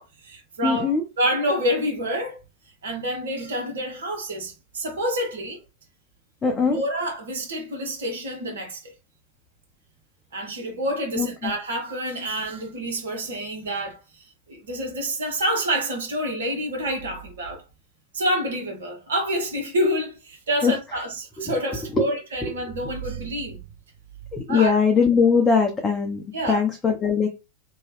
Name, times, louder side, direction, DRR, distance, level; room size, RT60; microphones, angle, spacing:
voice 1, 0.0-2.4 2.8-5.6 6.7-8.9 10.3-17.6 18.1-23.6 24.5-24.8 26.3-26.6, equal, 65° right, 1.1 m, -28 dB
voice 2, 0.6-1.0 6.4-6.8 11.2-11.3 20.6-20.7 22.0-22.1 24.3-27.3, left 5 dB, 15° left, 0.6 m, -20 dB
2.9 x 2.3 x 3.0 m
figure-of-eight pair, 90°, 0 cm